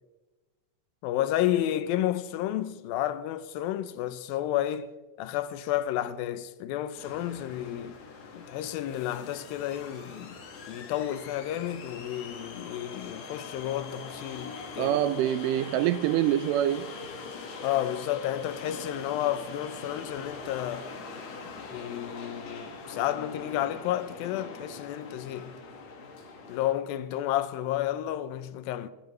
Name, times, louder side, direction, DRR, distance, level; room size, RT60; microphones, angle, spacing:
voice 1, 1.0-4.9 5.2-8.0 8.4-10.4 10.7-15.0 17.6-20.9 21.7-25.5 26.5-28.9, left 12 dB, 85° left, 2.4 m, -31 dB
sound 1, 6.9-26.8, left 4 dB, 55° left, 2.5 m, -42 dB
voice 2, 14.8-16.9, right 12 dB, 80° right, 2.0 m, -25 dB
27.5 x 10.0 x 3.1 m
omnidirectional pair, 4.1 m